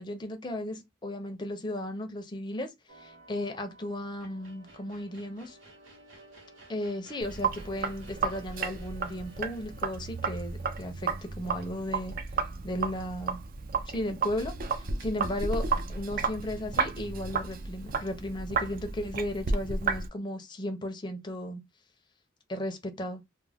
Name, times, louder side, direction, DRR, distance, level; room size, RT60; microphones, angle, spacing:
voice 1, 0.0-5.6 6.7-12.1 12.6-13.4 13.8-21.6 22.5-23.2, left 1 dB, 25° left, 0.5 m, -35 dB
sound 1, 2.9-12.1, right 2 dB, 80° right, 1.0 m, -55 dB
Sink (filling or washing), 7.2-20.1, right 4 dB, 45° right, 0.3 m, -33 dB
2.3 x 2.0 x 3.3 m
head